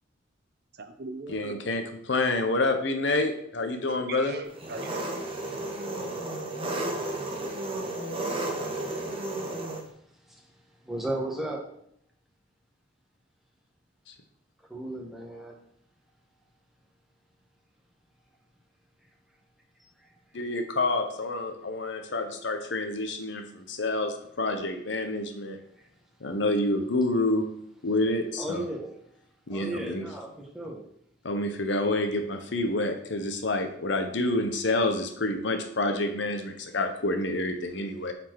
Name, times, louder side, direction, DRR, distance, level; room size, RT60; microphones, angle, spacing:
voice 1, 0.7-1.7 4.1-5.2, right 2 dB, 55° right, 8 dB, 0.7 m, -39 dB
voice 2, 1.3-4.3 20.3-25.6 26.2-27.5 27.8-28.6 29.5-30.0 31.2-38.1, left 2 dB, 60° left, 6 dB, 0.8 m, -28 dB
Engine, 4.5-9.8, right 2 dB, 30° right, 1.1 m, -33 dB
voice 3, 9.8-11.6 14.7-15.6 19.0-19.1 19.7-20.4 23.5-23.6 25.7-25.9 26.1-26.3 28.4-29.2 29.4-30.8, right 1 dB, ahead, -2 dB, 1.3 m, -36 dB
7.2 x 4.4 x 4.7 m, 0.70 s
head